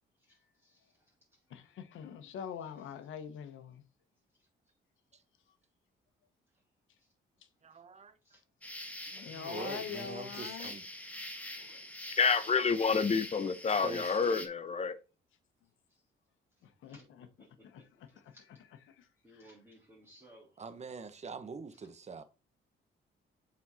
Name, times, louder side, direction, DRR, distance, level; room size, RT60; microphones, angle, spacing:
voice 1, 0.2-1.1 1.3-1.4 8.2-8.4 15.9-16.0 16.9-17.0 17.4-17.5 17.8-17.9 18.3-18.4 19.2-20.5, equal, 10° right, 3.8 m, -59 dB
voice 2, 1.5-3.8 7.4-7.5 9.1-11.0 11.5-12.2 16.6-17.3 17.6-19.6, left 8 dB, 80° left, 1.2 m, -45 dB
voice 3, 7.6-8.1 9.3-10.8 13.4-14.2 20.6-22.2, right 5 dB, 35° right, 1.0 m, -44 dB
sound 1, 8.6-14.5, left 1 dB, 5° left, 1.5 m, -44 dB
voice 4, 12.2-15.0, left 5 dB, 35° left, 0.8 m, -28 dB
7.2 x 4.4 x 4.1 m
cardioid pair, 90°, 20 cm